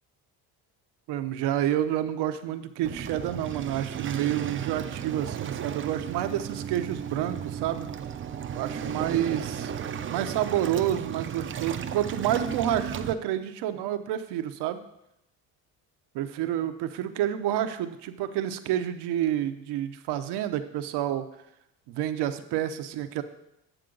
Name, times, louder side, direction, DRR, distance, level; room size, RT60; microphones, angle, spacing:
voice 1, 1.1-7.9 8.5-9.7 10.1-14.8 16.1-21.3 21.9-23.2, right 11 dB, 80° right, 10 dB, 0.8 m, -29 dB
Waves surf, 2.8-13.1, right 8 dB, 30° right, 0.5 m, -35 dB
9.1 x 6.8 x 3.8 m, 0.83 s
cardioid pair, 110°, 40 cm